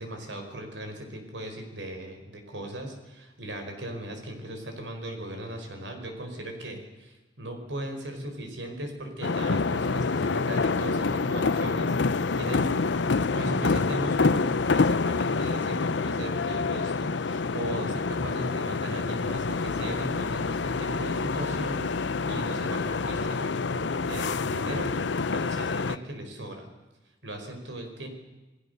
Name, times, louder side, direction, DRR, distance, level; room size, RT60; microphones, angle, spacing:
voice 1, 0.0-12.7 13.3-24.9 25.3-26.7 27.2-28.1, right 1 dB, 85° right, 4 dB, 4.9 m, -38 dB
sound 1, 9.2-26.0, left 4 dB, 75° left, 0.7 m, -27 dB
28.0 x 18.5 x 6.8 m, 1.1 s
head